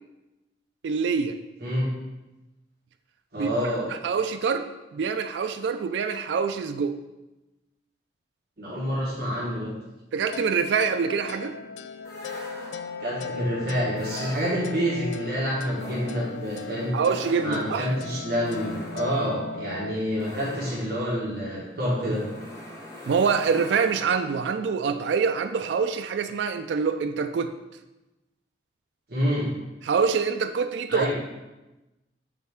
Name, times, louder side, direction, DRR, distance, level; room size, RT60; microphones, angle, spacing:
voice 1, 0.8-1.4 3.4-3.5 3.9-7.0 10.1-11.6 16.9-17.9 23.1-27.5 29.8-31.2, right 5 dB, 80° right, 8 dB, 0.3 m, -25 dB
voice 2, 3.3-3.9 8.6-9.7 13.0-16.9 17.4-22.2 29.1-29.5 30.9-31.2, equal, 60° right, -7 dB, 1.5 m, -27 dB
sound 1, 10.3-19.9, left 4 dB, 90° left, 0.3 m, -37 dB
sound 2, 12.0-13.1 13.9-15.0 15.7-24.4, equal, 20° left, 1.2 m, -43 dB
6.7 x 4.2 x 3.6 m, 1.0 s
head